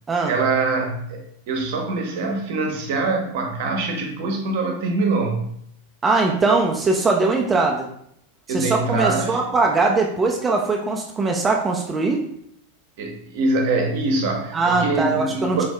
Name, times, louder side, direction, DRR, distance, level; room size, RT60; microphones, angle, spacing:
voice 1, 0.2-5.5 8.5-9.4 13.0-15.6, right 3 dB, 50° right, 2 dB, 0.9 m, -24 dB
voice 2, 6.0-7.9 8.5-12.2 14.5-15.6, right 3 dB, 15° right, 1 dB, 0.5 m, -21 dB
4.8 x 2.6 x 3.3 m, 0.72 s
figure-of-eight pair, 90°, 0 cm